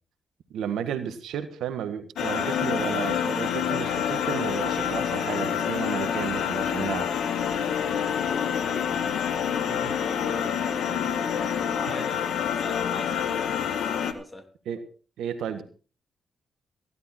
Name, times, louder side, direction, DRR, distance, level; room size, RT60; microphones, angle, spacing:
voice 1, 0.5-7.1 9.7-10.0 14.6-14.8 15.2-15.6, right 9 dB, 80° right, 10 dB, 1.6 m, -33 dB
sound 1, 2.2-14.1, left 8 dB, 80° left, 1.5 m, -27 dB
voice 2, 8.0-9.4 9.9-11.2 11.7-13.3 14.0-14.5, left 2 dB, 25° left, 7 dB, 3.0 m, -41 dB
15.5 x 12.0 x 4.4 m, 0.39 s
supercardioid pair, 50°, 0 cm